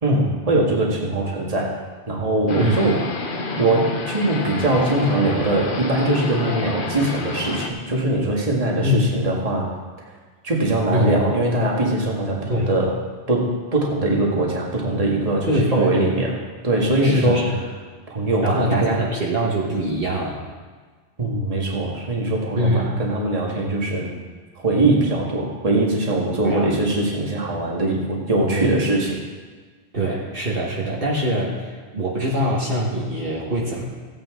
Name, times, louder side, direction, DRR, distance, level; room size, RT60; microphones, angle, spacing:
voice 1, 0.0-1.7 2.1-3.0 3.6-9.7 10.4-13.0 13.3-16.3 16.6-17.5 18.1-19.1 21.2-24.1 24.6-29.2, right 2 dB, 35° right, -3 dB, 1.9 m, -21 dB
sound 1, 2.5-7.7, left 3 dB, 55° left, 1.1 m, -28 dB
voice 2, 2.6-2.9 8.8-9.2 10.9-11.2 12.5-12.7 15.5-16.2 17.0-17.5 18.4-20.4 22.6-23.0 26.4-26.7 28.5-28.9 29.9-33.8, right 1 dB, 55° right, -4 dB, 1.8 m, -23 dB
16.0 x 9.2 x 3.7 m, 1.5 s
omnidirectional pair, 1.1 m